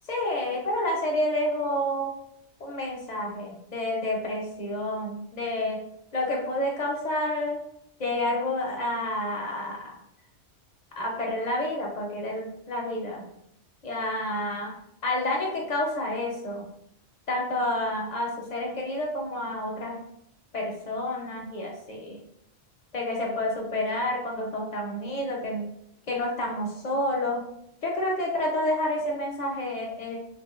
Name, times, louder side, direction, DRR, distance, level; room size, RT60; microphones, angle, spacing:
voice 1, 0.1-2.1 2.6-5.8 6.1-7.6 8.0-9.9 11.0-13.2 13.8-14.7 15.0-16.7 17.3-20.0 20.5-22.2 22.9-25.7 26.1-27.4 27.8-30.2, left 1 dB, 50° left, -1 dB, 0.5 m, -29 dB
3.4 x 2.4 x 2.3 m, 0.75 s
omnidirectional pair, 1.2 m